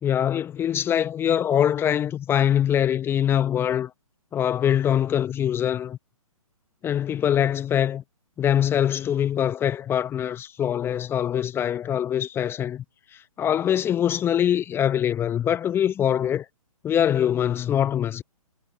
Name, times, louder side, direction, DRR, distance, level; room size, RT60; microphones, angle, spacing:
voice 1, 0.0-3.9 4.3-6.0 6.8-8.0 8.4-12.8 13.4-16.4 16.8-18.2, left 10 dB, 10° left, 1.2 m, -23 dB
figure-of-eight pair, 135°, 18 cm